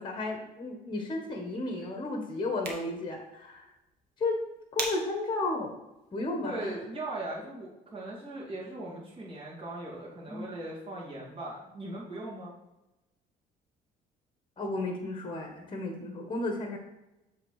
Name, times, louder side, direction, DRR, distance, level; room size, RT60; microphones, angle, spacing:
voice 1, 0.0-3.7 4.2-4.4 4.7-5.7 6.1-6.7 10.3-10.5 14.6-16.8, left 2 dB, 30° left, 3 dB, 1.2 m, -33 dB
sound 1, 2.4-7.5, right 4 dB, 70° right, 1.4 m, -43 dB
voice 2, 6.4-12.6, right 2 dB, 30° right, -5 dB, 2.6 m, -39 dB
7.4 x 3.6 x 4.8 m, 0.96 s
cardioid pair, 110°, 17 cm